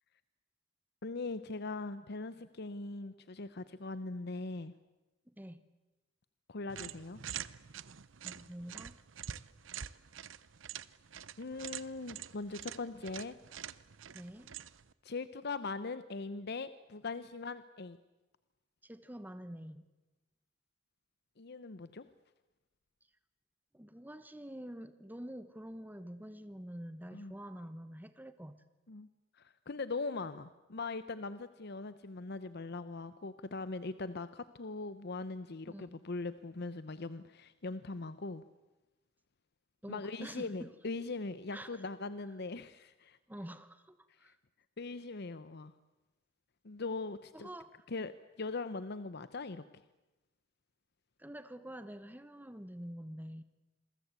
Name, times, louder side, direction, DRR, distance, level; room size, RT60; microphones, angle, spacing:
voice 1, 1.0-4.7 6.5-7.2 11.4-13.4 15.0-18.0 21.4-22.1 27.1-27.3 28.9-29.1 29.3-38.4 39.9-43.2 44.2-44.3 44.8-45.7 46.6-47.5 47.9-48.1 48.4-49.6, left 3 dB, 55° left, 13 dB, 0.8 m, -41 dB
voice 2, 5.3-5.6 8.2-8.9 14.1-14.5 18.8-19.8 23.7-28.6 35.7-36.0 39.8-40.7 41.5-41.9 43.3-44.4 47.3-47.7 51.2-53.4, equal, 10° right, 11 dB, 1.1 m, -47 dB
sound 1, 6.7-14.9, right 9 dB, 75° right, 0.8 m, -46 dB
27.5 x 22.5 x 8.3 m, 1.1 s
head